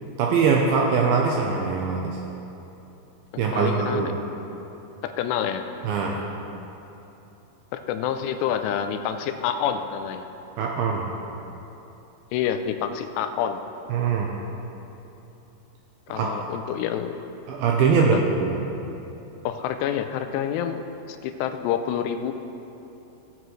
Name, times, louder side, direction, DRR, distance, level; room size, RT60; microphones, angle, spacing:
voice 1, 0.2-2.2 3.4-4.1 5.8-6.2 10.6-11.1 13.9-14.3 16.1-16.3 17.5-18.6, right 5 dB, 85° right, -1 dB, 2.2 m, -22 dB
voice 2, 3.3-4.1 5.0-5.6 7.7-10.3 12.3-13.6 16.1-17.1 18.0-18.2 19.4-20.8 21.1-22.3, left 9 dB, 85° left, 8 dB, 2.6 m, -27 dB
17.5 x 7.6 x 3.1 m, 2.9 s
omnidirectional pair, 5.0 m